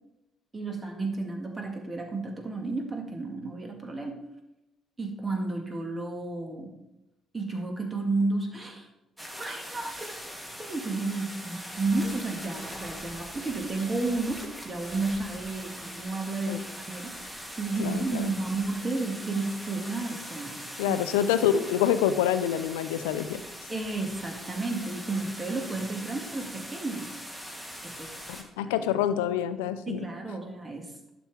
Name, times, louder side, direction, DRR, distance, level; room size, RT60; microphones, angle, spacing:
voice 1, 0.5-4.2 5.0-6.7 7.3-8.9 9.4-10.1 10.6-17.2 17.5-21.0 23.7-27.1 27.8-28.3 28.6-28.7 29.9-30.9, right 3 dB, 30° right, 2 dB, 2.1 m, -32 dB
sound 1, 9.2-28.4, equal, 10° right, 2.1 m, -41 dB
voice 2, 17.8-18.3 20.8-23.4 28.3-30.0, left 10 dB, 80° left, 12 dB, 0.5 m, -26 dB
11.0 x 7.0 x 3.5 m, 0.90 s
hypercardioid pair, 45°, 0 cm